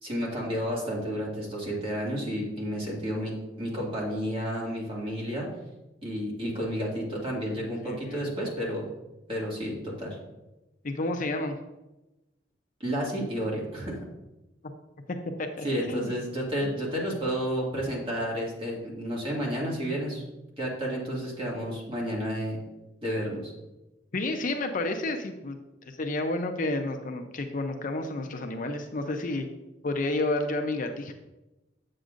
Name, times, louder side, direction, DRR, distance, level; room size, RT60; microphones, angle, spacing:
voice 1, 0.0-5.5 6.0-8.9 9.3-10.2 12.8-14.0 15.6-20.2 20.6-22.6 23.0-23.5, equal, 30° right, -4 dB, 2.1 m, -31 dB
voice 2, 7.6-8.3 10.8-11.6 15.1-16.2 16.6-16.7 24.1-29.5 29.8-31.1, left 2 dB, 45° left, 5 dB, 0.6 m, -31 dB
8.1 x 7.6 x 2.5 m, 1.0 s
head